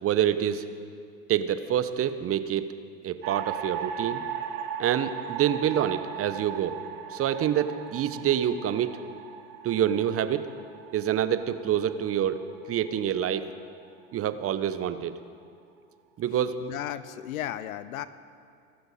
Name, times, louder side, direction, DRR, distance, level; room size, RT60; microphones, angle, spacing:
voice 1, 0.0-0.7 1.3-2.7 3.0-4.2 4.8-6.8 7.1-8.9 9.6-10.5 10.9-12.4 12.7-13.5 14.1-15.2 16.2-16.6, right 10 dB, 35° right, 12 dB, 0.9 m, -27 dB
sound 1, 3.2-13.5, right 8 dB, 55° right, 1.6 m, -38 dB
voice 2, 16.6-18.1, left 12 dB, 75° left, 15 dB, 0.8 m, -34 dB
24.5 x 12.5 x 4.2 m, 2.3 s
hypercardioid pair, 85°, 42 cm